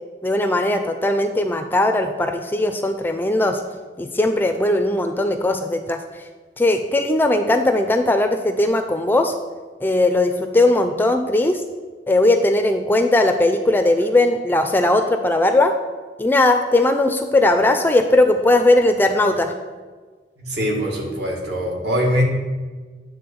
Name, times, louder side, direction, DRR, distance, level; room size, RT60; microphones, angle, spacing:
voice 1, 0.2-3.6 4.0-6.0 6.6-9.3 9.8-11.6 12.1-15.7 16.2-19.5, left 2 dB, 10° left, 6 dB, 0.4 m, -18 dB
voice 2, 20.4-22.2, equal, 65° right, -1 dB, 1.9 m, -22 dB
9.5 x 3.9 x 6.9 m, 1.4 s
head